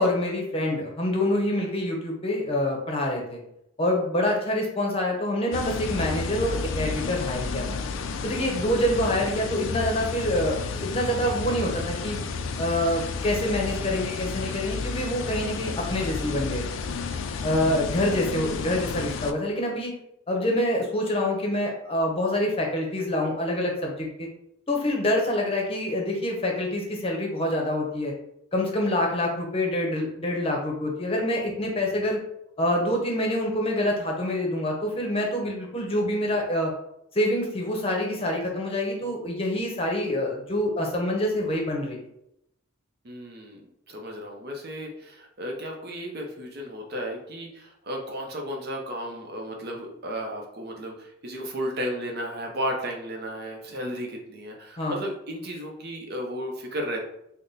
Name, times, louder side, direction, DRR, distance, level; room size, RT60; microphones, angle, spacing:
voice 1, 0.0-3.4 3.8-7.8 8.2-12.2 12.6-16.8 17.4-19.9 20.3-24.3 24.7-28.1 28.5-32.2 32.6-36.7 37.1-42.0 54.8-55.0, left 1 dB, 30° left, 0 dB, 0.7 m, -26 dB
sound 1, 5.5-19.3, left 4 dB, 70° left, 0.3 m, -31 dB
voice 2, 43.0-57.0, equal, 50° right, 1 dB, 0.7 m, -34 dB
3.5 x 2.1 x 4.0 m, 0.79 s
head